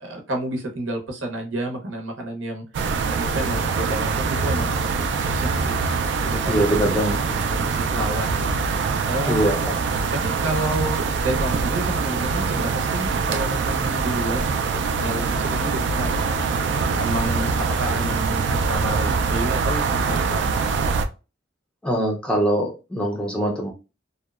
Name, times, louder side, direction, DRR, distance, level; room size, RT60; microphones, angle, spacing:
voice 1, 0.0-2.7 3.0-5.8 6.2-6.5 7.2-8.6 9.1-9.6 10.1-14.5 15.0-16.2 16.9-20.5, right 1 dB, 85° right, 2 dB, 0.8 m, -30 dB
sound 1, 2.7-21.1, right 4 dB, 65° right, 0.3 m, -24 dB
voice 2, 6.4-7.2 9.3-9.8 21.8-23.7, right 1 dB, 5° left, 1 dB, 0.4 m, -23 dB
2.7 x 2.1 x 2.3 m, 0.30 s
head